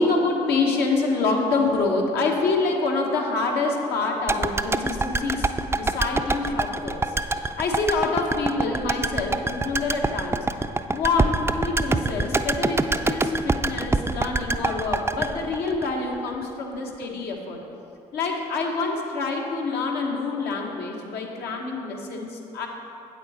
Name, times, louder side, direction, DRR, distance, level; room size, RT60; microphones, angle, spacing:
voice 1, 0.0-10.5 10.9-17.6 18.1-22.7, left 3 dB, 70° left, 0 dB, 1.3 m, -26 dB
sound 1, 4.3-16.5 16.7-16.8, right 3 dB, 15° right, 0.4 m, -25 dB
8.4 x 7.9 x 4.2 m, 2.7 s
hypercardioid pair, 55°, 17 cm